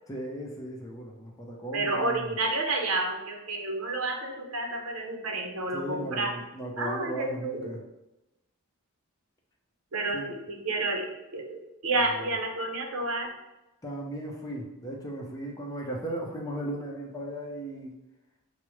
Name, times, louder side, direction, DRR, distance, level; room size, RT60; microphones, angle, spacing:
voice 1, 0.1-2.3 5.7-7.8 10.1-10.3 12.1-12.3 13.8-17.9, right 1 dB, 15° left, -1 dB, 0.6 m, -36 dB
voice 2, 1.7-6.3 6.8-7.7 9.9-13.3, right 2 dB, 70° right, 2 dB, 0.7 m, -30 dB
4.9 x 2.0 x 3.0 m, 0.94 s
head